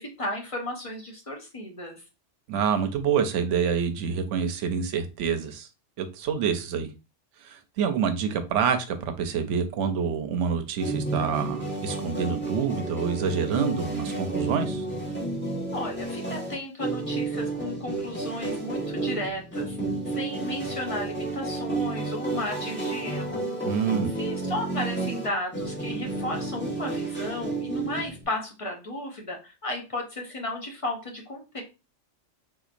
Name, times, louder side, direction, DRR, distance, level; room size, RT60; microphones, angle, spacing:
voice 1, 0.0-2.0 15.7-19.8 20.1-23.4 24.2-31.6, left 1 dB, 35° left, 1 dB, 0.6 m, -34 dB
voice 2, 2.5-5.7 6.0-6.9 7.4-14.9 23.6-24.1, right 6 dB, 80° right, 8 dB, 0.9 m, -27 dB
sound 1, 10.8-28.2, right 2 dB, 10° left, 1.0 m, -31 dB
3.8 x 2.9 x 2.5 m, 0.30 s
omnidirectional pair, 1.2 m